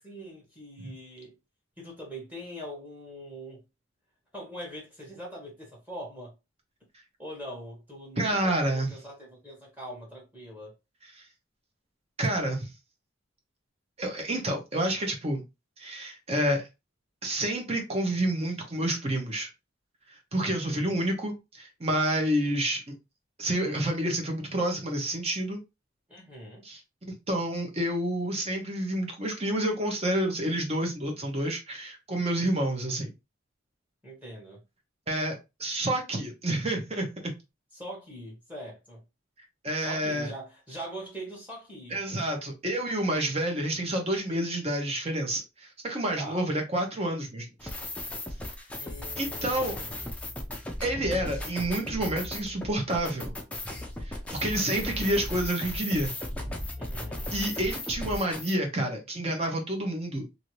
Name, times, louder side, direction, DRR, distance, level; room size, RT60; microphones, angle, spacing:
voice 1, 0.0-1.3 1.8-3.6 4.3-6.3 7.2-10.7 20.5-21.0 26.1-26.6 34.0-34.6 37.7-39.0 39.8-42.0 46.2-46.4 48.8-50.1 56.8-57.3, equal, 10° right, 1.1 m, -42 dB
voice 2, 8.2-8.9 11.2-11.3 12.2-12.7 14.0-15.4 15.8-16.7 17.2-19.5 20.3-22.9 23.4-25.6 26.6-26.8 27.3-33.1 35.1-37.3 39.6-40.3 41.9-47.7 49.2-49.8 50.8-53.3 54.0-56.1 57.3-60.4, right 1 dB, 30° right, 0.9 m, -29 dB
sound 1, 47.6-58.5, left 1 dB, 5° left, 0.5 m, -36 dB
2.7 x 2.6 x 3.0 m
head